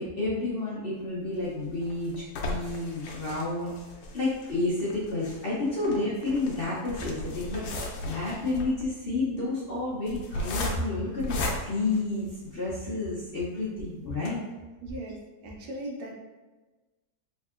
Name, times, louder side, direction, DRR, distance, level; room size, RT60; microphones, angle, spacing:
voice 1, 0.0-3.7 4.1-12.3 12.5-14.4, left 2 dB, 50° left, -7 dB, 0.7 m, -30 dB
sound 1, 1.3-12.7 13.3-13.4 13.7-13.8 14.1-14.3, left 1 dB, 80° left, 1.1 m, -36 dB
voice 2, 14.8-15.2 15.4-16.1, right 1 dB, 80° right, 0 dB, 1.2 m, -37 dB
3.5 x 3.2 x 2.4 m, 1.2 s
omnidirectional pair, 1.7 m